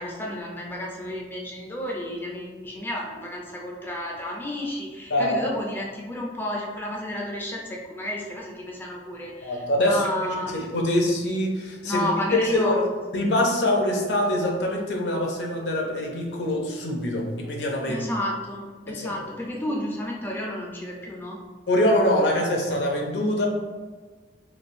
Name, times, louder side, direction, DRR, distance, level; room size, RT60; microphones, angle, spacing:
voice 1, 0.0-10.5 11.8-12.9 17.9-21.4, left 1 dB, 10° left, -2 dB, 0.4 m, -31 dB
voice 2, 5.1-5.4 9.4-12.1 12.5-12.8 13.1-18.0 18.9-19.1 21.7-23.5, left 1 dB, 75° left, 0 dB, 0.6 m, -24 dB
3.3 x 2.4 x 2.5 m, 1.4 s
head